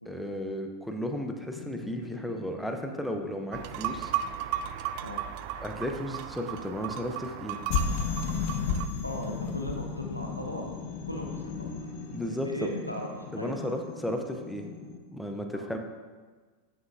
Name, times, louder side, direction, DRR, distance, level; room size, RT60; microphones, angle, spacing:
voice 1, 0.1-4.1 5.6-7.6 12.1-12.7 13.3-14.7 15.1-15.8, equal, ahead, 4 dB, 0.6 m, -34 dB
sound 1, 1.5-4.6 7.7-15.0, left 5 dB, 45° left, 0.7 m, -35 dB
sound 2, 3.5-8.9, right 10 dB, 45° right, 0.3 m, -35 dB
voice 2, 9.0-10.7 11.1-11.9 12.4-13.7 15.5-15.7, equal, 90° left, 0 dB, 0.8 m, -38 dB
8.9 x 6.5 x 2.4 m, 1.4 s
figure-of-eight pair, 90°, 0 cm